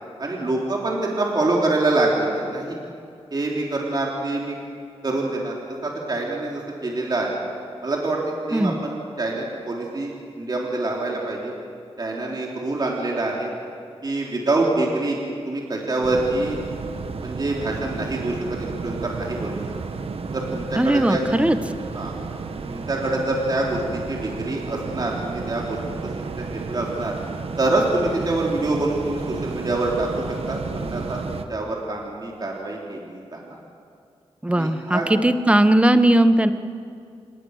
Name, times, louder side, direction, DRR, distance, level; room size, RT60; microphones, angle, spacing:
voice 1, 0.2-2.8 3.3-4.6 5.0-5.5 5.8-7.4 7.8-8.2 8.5-10.1 10.4-11.5 12.0-13.5 14.0-15.2 15.4-16.6 17.2-19.6 20.3-21.2 21.9-22.1 22.6-26.1 26.4-27.1 27.6-33.6 34.5-35.1, right 2 dB, 40° right, -2 dB, 3.4 m, -25 dB
sound 1, 16.0-31.4, right 4 dB, 60° right, 1.3 m, -32 dB
voice 2, 20.8-21.6 34.4-36.5, right 1 dB, 10° right, 10 dB, 1.1 m, -18 dB
27.5 x 21.5 x 6.5 m, 2.4 s
wide cardioid pair, 95°, 11 cm